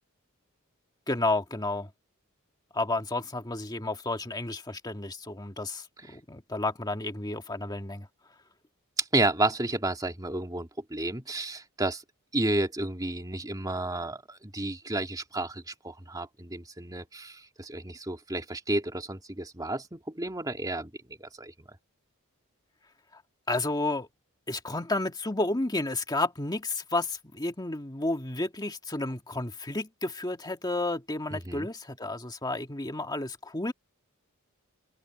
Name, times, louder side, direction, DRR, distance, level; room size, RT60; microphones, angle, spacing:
voice 1, 1.1-1.9 2.7-8.1 23.1-23.2 23.5-24.1 24.5-33.7, left 2 dB, 20° left, 1.7 m, -31 dB
voice 2, 9.0-12.0 12.3-20.9 21.2-21.5 31.3-31.7, right 2 dB, 20° right, 2.7 m, -31 dB
open air
head